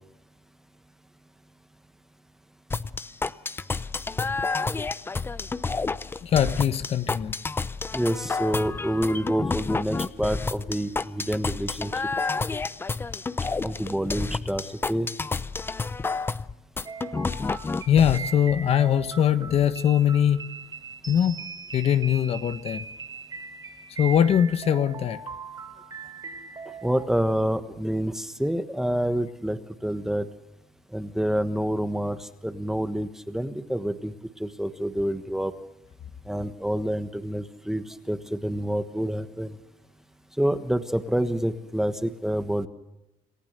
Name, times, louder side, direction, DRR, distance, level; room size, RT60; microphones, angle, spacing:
sound 1, 2.7-18.2, left 4 dB, 15° left, 0.6 m, -30 dB
voice 1, 6.2-7.3 17.9-20.5 21.1-21.4 21.7-22.9 24.0-25.2, left 9 dB, 45° left, 11 dB, 1.1 m, -22 dB
voice 2, 7.9-11.9 13.6-15.1 26.8-30.3 30.9-34.1 34.4-35.5 36.3-39.5 40.4-42.7, equal, 5° right, 10 dB, 1.3 m, -27 dB
sound 2, 16.9-27.1, right 5 dB, 30° right, 4.0 m, -40 dB
27.5 x 15.0 x 6.7 m, 0.91 s
cardioid pair, 125°, 14 cm